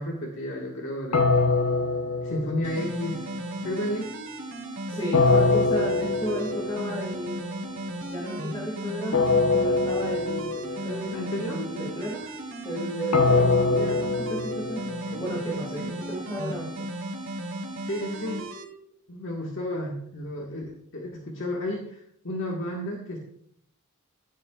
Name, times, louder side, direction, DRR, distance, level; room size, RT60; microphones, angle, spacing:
voice 1, 0.0-1.3 2.2-3.3 3.6-4.2 11.1-11.6 13.7-14.0 15.1-15.2 15.8-16.0 17.8-18.5 19.1-23.2, left 1 dB, 60° left, -2 dB, 1.7 m, -32 dB
sound 1, 1.1-3.2 5.1-7.0 9.1-11.0 13.1-15.3, left 3 dB, 90° left, 1.1 m, -23 dB
sound 2, 2.6-18.6, right 1 dB, 60° right, 2.7 m, -35 dB
voice 2, 4.9-7.4 8.1-12.2 12.6-16.9, equal, 20° left, -3 dB, 2.4 m, -34 dB
15.5 x 11.0 x 2.5 m, 0.68 s
head